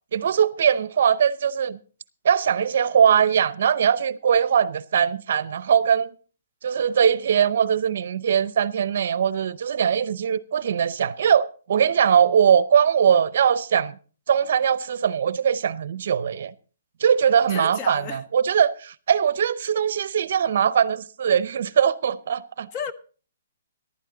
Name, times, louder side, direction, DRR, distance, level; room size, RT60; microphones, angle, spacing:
voice 1, 0.1-1.8 2.2-6.1 6.6-13.9 14.3-16.5 17.0-22.7, right 8 dB, 55° right, 0.6 m, -21 dB
voice 2, 17.5-18.2 22.7-22.9, left 6 dB, 25° left, 1.0 m, -32 dB
14.0 x 11.5 x 3.9 m
hypercardioid pair, 165°, 0 cm